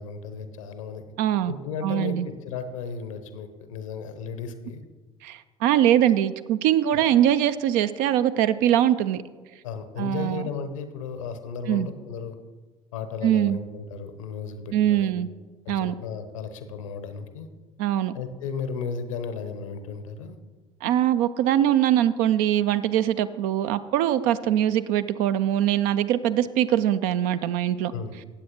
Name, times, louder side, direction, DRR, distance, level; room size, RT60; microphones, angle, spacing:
voice 1, 0.0-1.0 1.5-4.8 6.9-7.1 9.6-12.4 12.9-15.1 15.6-17.5 18.1-20.4 27.9-28.1, left 5 dB, 70° left, 9 dB, 0.8 m, -34 dB
voice 2, 1.2-1.6 1.8-2.3 5.2-9.2 10.0-10.5 11.7-11.9 13.2-13.6 14.7-15.3 15.7-15.9 17.8-18.1 20.8-27.9, right 11 dB, 55° right, 13 dB, 0.5 m, -22 dB
17.0 x 7.7 x 3.0 m, 1.4 s
figure-of-eight pair, 60°, 17 cm